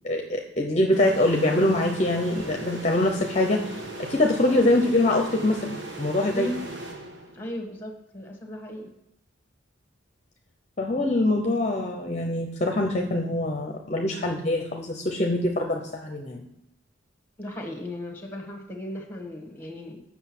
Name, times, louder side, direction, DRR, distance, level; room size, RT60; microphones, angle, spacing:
voice 1, 0.0-3.8 4.1-6.5 10.8-16.4, left 1 dB, 35° left, 2 dB, 0.7 m, -24 dB
sound 1, 0.9-7.6, right 2 dB, 60° right, 1.3 m, -38 dB
voice 2, 6.3-6.7 7.3-8.9 17.4-20.0, left 1 dB, 10° left, 4 dB, 1.4 m, -36 dB
7.9 x 6.0 x 6.0 m, 0.81 s
head